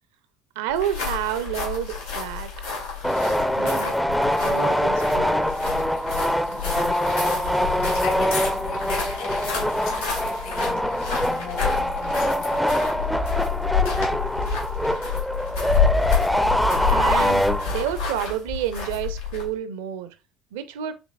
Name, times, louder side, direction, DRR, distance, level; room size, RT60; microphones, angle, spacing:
voice 1, 0.6-2.5 3.5-3.9 4.4-5.4 16.9-20.1 20.5-20.9, right 10 dB, 65° right, 0.5 m, -29 dB
sound 1, 0.7-19.6, left 6 dB, 80° left, 1.9 m, -29 dB
sound 2, 3.0-18.0, equal, 5° left, 0.4 m, -24 dB
voice 2, 6.5-7.1 7.7-11.0 11.3-12.8, left 6 dB, 60° left, 1.0 m, -38 dB
5.2 x 3.3 x 2.3 m
figure-of-eight pair, 60°, 0 cm